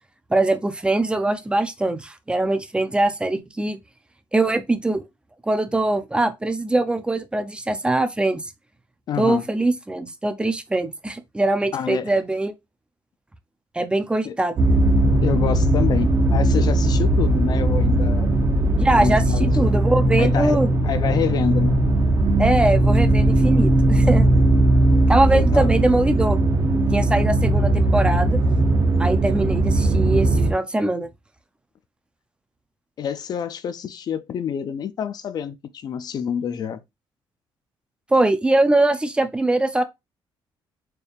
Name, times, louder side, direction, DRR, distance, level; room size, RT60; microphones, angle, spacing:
voice 1, 0.3-3.8 4.3-5.0 5.4-8.5 9.2-12.5 13.7-14.6 18.8-20.7 22.4-24.3 25.1-26.4 26.9-28.4 29.0-31.1 38.1-39.8, right 2 dB, 10° right, 0.5 m, -22 dB
voice 2, 9.1-9.4 11.7-12.1 14.2-14.4 15.2-18.4 18.9-19.7 20.2-20.6 20.8-21.8 25.3-25.8 33.0-36.8, left 8 dB, 50° left, 0.4 m, -27 dB
sound 1, 14.6-30.5, right 1 dB, 35° right, 0.9 m, -18 dB
4.4 x 3.4 x 2.4 m
cardioid pair, 130°, 9 cm